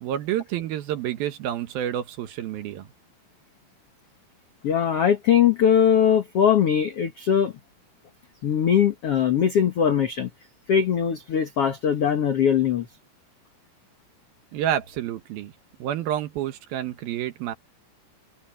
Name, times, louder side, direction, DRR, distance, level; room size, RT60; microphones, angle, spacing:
voice 1, 0.0-2.9 14.5-15.5 15.8-17.5, right 11 dB, 70° right, 2.7 m, -29 dB
voice 2, 4.6-7.5 8.4-10.3 10.7-12.9, left 8 dB, 75° left, 1.3 m, -21 dB
omnidirectional pair, 4.8 m